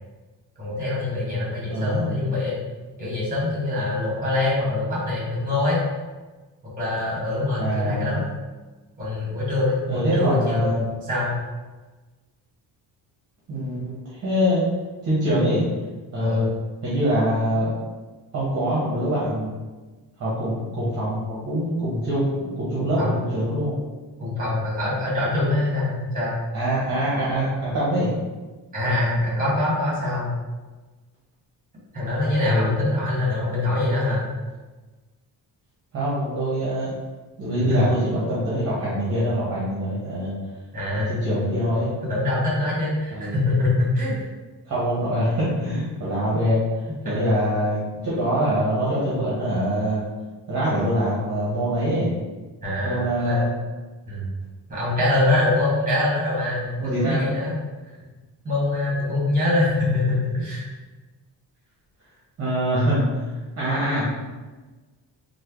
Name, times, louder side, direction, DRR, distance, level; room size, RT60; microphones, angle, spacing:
voice 1, 0.6-2.6 3.0-5.8 6.6-8.2 9.0-11.3 16.2-16.5 22.7-23.2 24.2-26.3 28.7-30.3 31.9-34.3 37.5-37.8 40.7-41.1 42.0-44.1 46.9-47.3 52.6-53.4 54.1-54.3 54.7-57.5 58.4-60.6, left 2 dB, 20° right, -6 dB, 1.1 m, -24 dB
voice 2, 1.7-2.1 7.6-8.2 9.9-10.9 13.5-14.6 15.0-15.6 16.1-16.5 16.8-17.7 18.3-19.6 20.2-23.8 26.5-28.1 32.4-32.7 35.9-36.9 37.4-40.3 40.9-41.9 43.1-43.4 44.7-50.0 50.5-52.1 52.8-53.5 56.8-57.2 62.4-63.2 63.6-64.0, equal, 35° right, -8 dB, 0.8 m, -24 dB
3.1 x 2.1 x 3.4 m, 1.3 s
cardioid pair, 180°, 43 cm